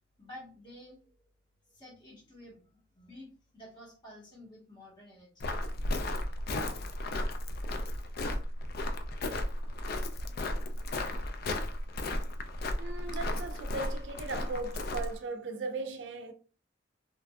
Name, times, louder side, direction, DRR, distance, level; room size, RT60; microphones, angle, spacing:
voice 1, 0.2-1.2 1.7-5.5, left 1 dB, 25° left, 1.3 m, -51 dB
Walk footsteps, 5.4-15.2, left 1 dB, 50° left, 0.4 m, -34 dB
voice 2, 12.8-16.3, right 3 dB, 70° right, 0.4 m, -38 dB
3.1 x 2.5 x 2.3 m
head